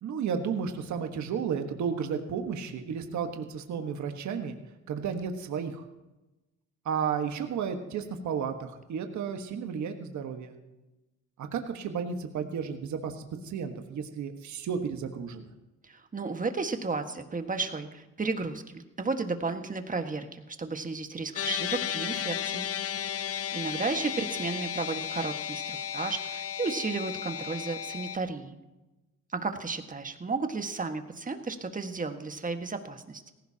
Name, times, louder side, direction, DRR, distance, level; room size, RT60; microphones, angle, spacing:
voice 1, 0.0-4.6 4.9-5.8 6.8-10.6 11.4-15.5, right 6 dB, 70° right, 5 dB, 1.5 m, -33 dB
voice 2, 15.8-22.7 23.5-28.6 29.3-33.3, right 4 dB, 25° right, 6 dB, 1.6 m, -33 dB
sound 1, 21.4-28.2, left 9 dB, 50° left, 0.6 m, -34 dB
18.0 x 16.0 x 2.9 m, 1.0 s
cardioid pair, 90°, 30 cm